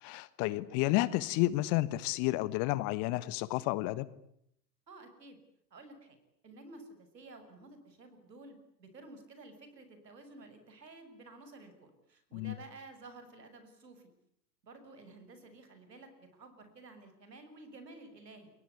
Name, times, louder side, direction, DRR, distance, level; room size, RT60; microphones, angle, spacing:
voice 1, 0.0-4.1 12.3-12.6, left 18 dB, 35° left, 17 dB, 1.4 m, -31 dB
voice 2, 4.9-5.4 5.7-6.2 6.4-14.1 14.6-18.5, right 2 dB, 75° right, 9 dB, 7.0 m, -52 dB
29.0 x 23.0 x 8.5 m, 0.73 s
figure-of-eight pair, 100°, 49 cm